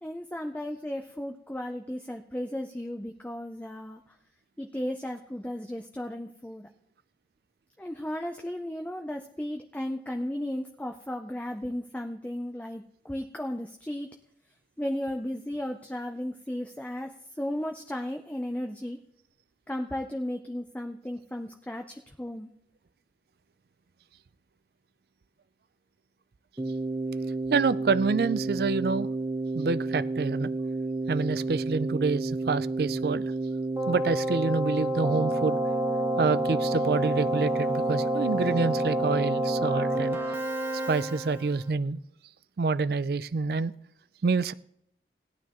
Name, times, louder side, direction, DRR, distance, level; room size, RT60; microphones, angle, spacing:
voice 1, 0.0-4.0 4.6-6.7 7.8-14.1 14.8-19.0 19.7-22.5, left 1 dB, 10° left, 4 dB, 0.5 m, -35 dB
Keyboard (musical), 26.6-41.6, right 2 dB, 15° right, 1.0 m, -29 dB
voice 2, 27.5-29.1 29.5-30.5 31.1-33.2 33.9-35.6 36.2-40.2 40.9-42.0 42.6-43.7 44.2-44.5, right 4 dB, 60° right, 16 dB, 0.4 m, -27 dB
17.5 x 11.5 x 3.0 m, 0.75 s
head